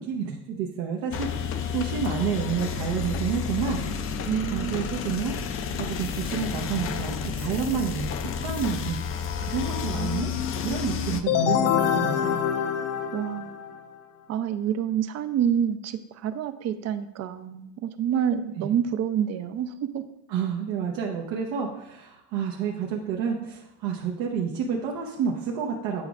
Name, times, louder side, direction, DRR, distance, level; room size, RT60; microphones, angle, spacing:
voice 1, 0.0-3.8 4.5-5.4 5.8-10.3 10.6-12.4 18.6-18.7 20.3-26.1, right 7 dB, 75° right, -1 dB, 1.0 m, -30 dB
sound 1, 1.1-11.2, left 6 dB, 35° left, 0.4 m, -31 dB
voice 2, 4.2-4.8 13.1-13.7 14.3-20.0, right 9 dB, 40° right, 11 dB, 0.5 m, -28 dB
sound 2, 11.3-13.9, left 9 dB, 80° left, 0.8 m, -25 dB
8.9 x 5.0 x 2.4 m, 0.88 s
cardioid pair, 130°, 44 cm